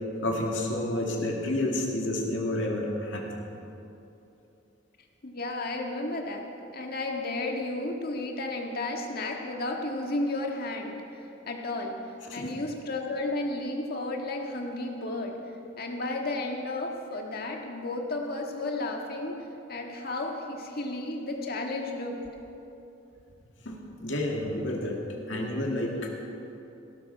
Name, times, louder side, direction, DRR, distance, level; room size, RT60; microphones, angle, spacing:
voice 1, 0.2-3.2 12.3-12.5 23.7-25.0 25.3-26.1, left 1 dB, 70° left, -1 dB, 2.2 m, -30 dB
voice 2, 5.2-12.0 12.3-15.4 15.8-22.2, left 2 dB, 55° left, 2 dB, 1.7 m, -33 dB
17.0 x 12.5 x 4.7 m, 2.9 s
head